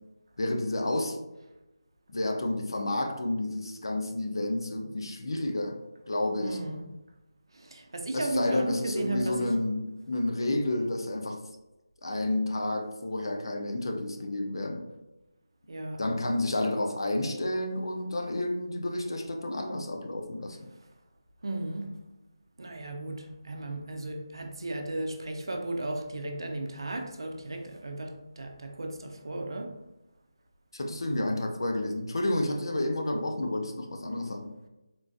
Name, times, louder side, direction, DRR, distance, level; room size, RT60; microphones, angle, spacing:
voice 1, 0.4-1.2 2.1-5.8 6.1-6.6 8.1-11.5 12.0-14.9 16.0-20.6 30.7-34.5, left 1 dB, 65° left, 0.5 m, -30 dB
voice 2, 6.4-6.9 7.5-9.5 15.7-16.0 21.4-22.0 22.6-29.7, right 2 dB, 65° right, 0.5 m, -35 dB
3.8 x 2.5 x 2.4 m
figure-of-eight pair, 170°, 3 cm